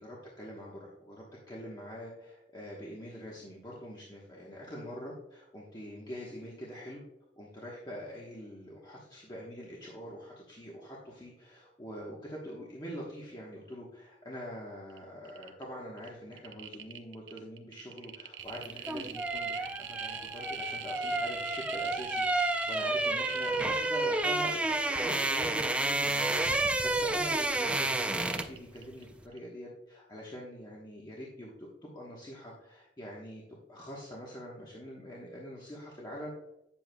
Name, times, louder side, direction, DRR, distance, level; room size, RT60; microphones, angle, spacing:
voice 1, 0.0-7.0 7.4-36.3, equal, 25° left, -4 dB, 1.1 m, -44 dB
sound 1, 14.9-15.0 15.2-15.6 16.0-29.0 29.3-29.4, right 10 dB, 75° right, 0.6 m, -44 dB
sound 2, 18.6-28.6 28.9-29.1, right 2 dB, 5° right, 0.4 m, -30 dB
9.2 x 7.5 x 2.2 m, 0.88 s
head